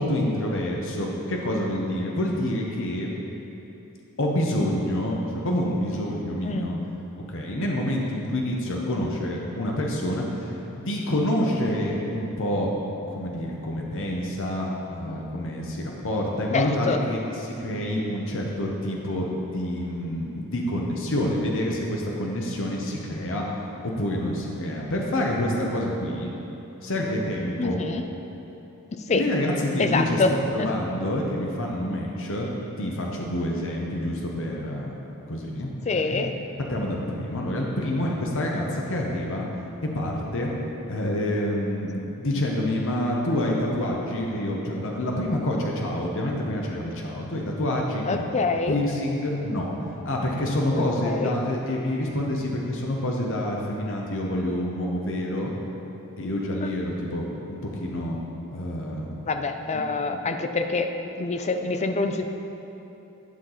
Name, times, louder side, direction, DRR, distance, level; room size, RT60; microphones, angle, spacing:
voice 1, 0.0-3.1 4.2-6.8 7.3-12.7 13.1-19.3 19.5-23.4 23.8-26.3 26.8-27.8 29.1-32.5 32.8-34.9 35.3-35.7 36.0-36.2 36.6-39.4 39.9-40.5 40.9-48.3 48.7-49.7 50.0-55.5 56.2-58.2 58.5-59.2 59.7-60.2, left 1 dB, 60° left, -1 dB, 0.9 m, -27 dB
voice 2, 16.5-17.0 27.6-28.0 29.1-29.2 29.8-30.3 30.6-30.7 35.9-36.3 48.1-48.8 51.0-51.3 59.3-60.9 61.2-62.2, left 3 dB, 30° left, 6 dB, 0.4 m, -25 dB
10.5 x 5.9 x 3.9 m, 3.0 s
head